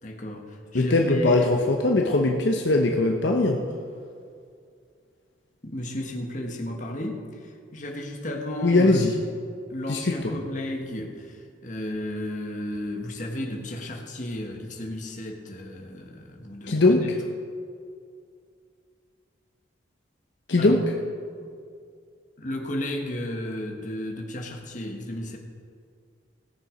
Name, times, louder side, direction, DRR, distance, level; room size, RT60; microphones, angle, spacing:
voice 1, 0.0-1.6 5.6-9.1 9.7-17.1 20.6-20.8 21.4-21.5 22.4-25.4, left 1 dB, 40° left, 1 dB, 1.4 m, -34 dB
voice 2, 0.7-3.6 8.6-9.1 9.9-10.2 16.7-17.0 20.5-20.8, left 2 dB, 65° left, 1 dB, 0.9 m, -20 dB
17.5 x 7.0 x 5.1 m, 2.3 s
head